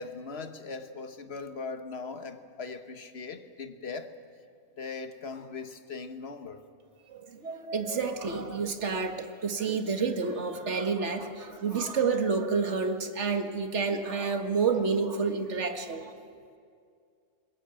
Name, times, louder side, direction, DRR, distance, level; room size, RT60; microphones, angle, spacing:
voice 1, 0.0-4.1 4.8-6.6, left 4 dB, 50° left, 1.5 m, -39 dB
voice 2, 7.1-16.1, right 5 dB, 55° right, 1.9 m, -29 dB
22.5 x 20.5 x 8.9 m
omnidirectional pair, 1.5 m